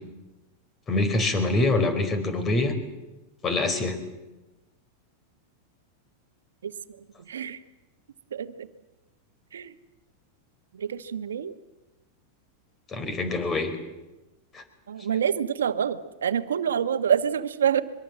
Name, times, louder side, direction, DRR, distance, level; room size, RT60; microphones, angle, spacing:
voice 1, 0.9-2.7 3.4-4.0 12.9-13.8 14.5-14.6, left 2 dB, 30° left, 10 dB, 4.7 m, -25 dB
voice 2, 7.3-7.6 8.3-8.7 9.5-9.7 10.8-11.5 14.9-17.8, right 8 dB, 85° right, 10 dB, 1.4 m, -26 dB
24.0 x 22.5 x 7.6 m, 1.1 s
hypercardioid pair, 100°, 0 cm